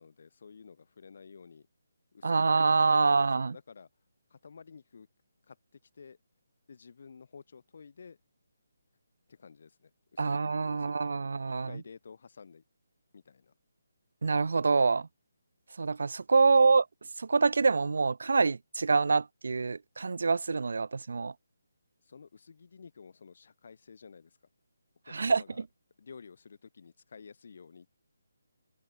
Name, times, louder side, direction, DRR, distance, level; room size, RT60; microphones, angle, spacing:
voice 1, 0.0-1.7 2.1-3.9 4.3-5.1 5.5-5.6 5.9-6.2 6.7-8.2 9.3-11.0 11.4-12.6 13.1-13.5 16.4-16.6 22.0-24.4 25.0-25.7 26.0-28.0, left 5 dB, 55° left, 7.3 m, -52 dB
voice 2, 2.2-3.5 10.2-11.7 14.2-15.1 15.8-16.8 17.2-21.3 25.1-25.4, right 4 dB, 65° right, 1.0 m, -26 dB
open air
figure-of-eight pair, 150°, 0 cm